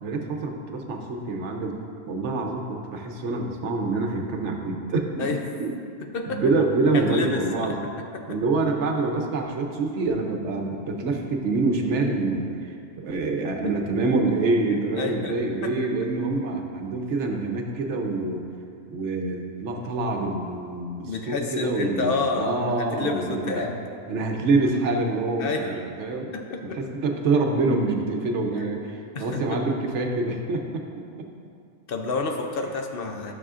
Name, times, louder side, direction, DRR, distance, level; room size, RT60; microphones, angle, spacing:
voice 1, 0.0-1.8 2.1-5.3 5.6-5.7 6.3-7.9 8.3-18.4 18.9-23.6 24.1-26.3 26.6-31.3, right 3 dB, 75° right, 2 dB, 1.0 m, -26 dB
voice 2, 6.0-6.4 6.9-7.7 12.1-12.2 14.7-15.3 15.6-15.7 21.0-23.8 25.4-25.7 26.3-26.8 28.6-28.7 29.1-29.6 31.9-33.3, left 3 dB, 55° left, 3 dB, 0.8 m, -29 dB
12.0 x 6.3 x 2.5 m, 2.4 s
omnidirectional pair, 1.2 m